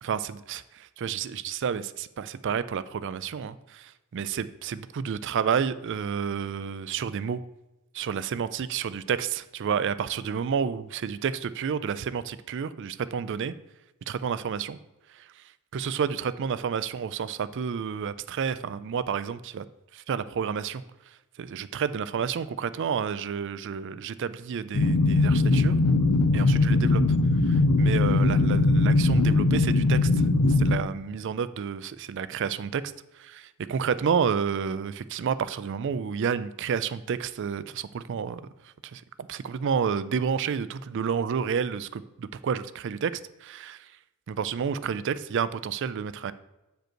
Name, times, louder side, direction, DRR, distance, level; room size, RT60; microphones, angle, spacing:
voice 1, 0.0-7.4 7.9-13.5 14.1-14.8 15.1-15.4 15.7-19.6 19.9-20.8 21.4-25.8 26.3-27.0 27.4-32.8 33.1-38.4 38.8-39.0 39.3-43.1 43.4-43.9 44.3-46.3, right 7 dB, 55° right, 15 dB, 0.3 m, -30 dB
sound 1, 24.7-30.8, left 2 dB, 90° left, 0.7 m, -21 dB
7.8 x 5.2 x 4.4 m, 1.0 s
head